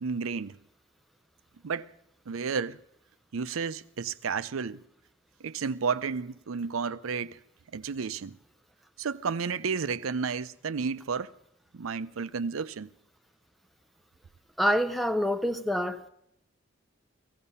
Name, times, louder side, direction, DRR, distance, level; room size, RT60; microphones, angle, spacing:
voice 1, 0.0-0.6 1.6-1.9 2.3-2.8 3.3-4.8 5.4-7.4 7.7-8.4 9.0-11.3 11.7-12.9, right 5 dB, 90° right, 0.5 m, -32 dB
voice 2, 14.6-16.1, equal, ahead, 0.5 m, -26 dB
16.0 x 15.5 x 5.5 m
head